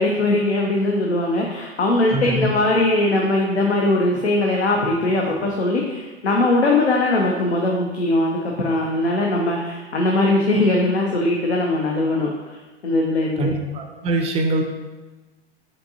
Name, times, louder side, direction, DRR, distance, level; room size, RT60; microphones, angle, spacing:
voice 1, 0.0-13.5, left 2 dB, 85° left, -1 dB, 0.6 m, -20 dB
voice 2, 2.1-2.5 13.4-14.6, right 2 dB, 20° right, 3 dB, 0.4 m, -23 dB
5.1 x 2.7 x 2.7 m, 1.2 s
figure-of-eight pair, 95°, 33 cm